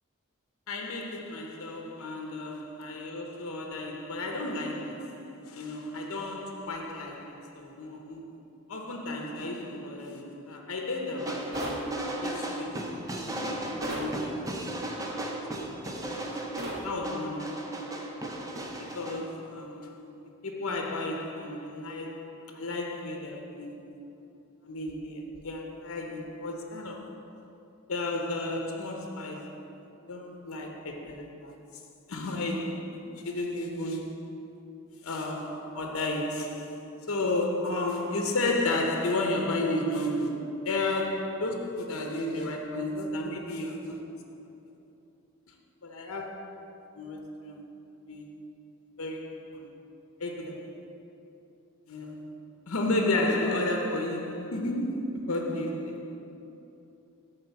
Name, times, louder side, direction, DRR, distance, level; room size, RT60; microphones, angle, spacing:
voice 1, 0.7-11.8 12.2-14.6 15.5-16.2 16.8-17.9 18.8-20.1 20.4-23.9 24.6-27.2 27.9-29.6 30.1-31.5 32.1-34.4 35.0-44.0 45.8-47.7 48.1-48.4 49.0-49.7 50.2-50.9 51.9-52.4 52.7-56.2, left 2 dB, 70° left, 0.8 m, -33 dB
sound 1, 11.2-19.2, right 1 dB, 15° right, 0.5 m, -35 dB
sound 2, 11.5-11.8 13.8-14.1 16.6-16.8, right 1 dB, 45° right, 1.6 m, -35 dB
8.8 x 3.7 x 6.8 m
head